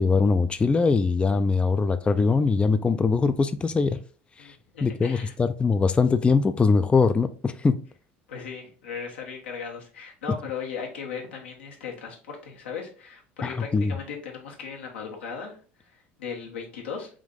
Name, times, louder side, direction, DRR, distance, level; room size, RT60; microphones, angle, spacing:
voice 1, 0.0-4.0 4.4-4.5 4.8-7.8 13.4-13.9, left 4 dB, 20° left, 0.3 m, -22 dB
voice 2, 4.4-5.3 8.3-15.6 16.2-17.1, left 6 dB, 85° left, 1.0 m, -37 dB
3.6 x 2.6 x 3.7 m
hypercardioid pair, 75°, 6 cm